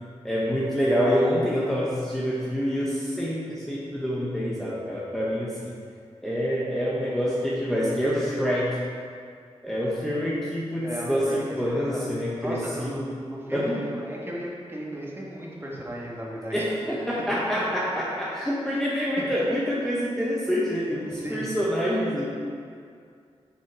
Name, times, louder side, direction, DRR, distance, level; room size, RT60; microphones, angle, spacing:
voice 1, 0.2-5.7 6.2-8.7 9.6-13.1 13.5-13.8 16.5-22.3, equal, 5° left, -7 dB, 1.2 m, -26 dB
voice 2, 10.8-12.0 12.4-16.7 18.8-19.2 21.1-21.6, equal, 20° right, -4 dB, 1.7 m, -35 dB
6.9 x 6.2 x 4.8 m, 2.2 s
cardioid pair, 70°, 12 cm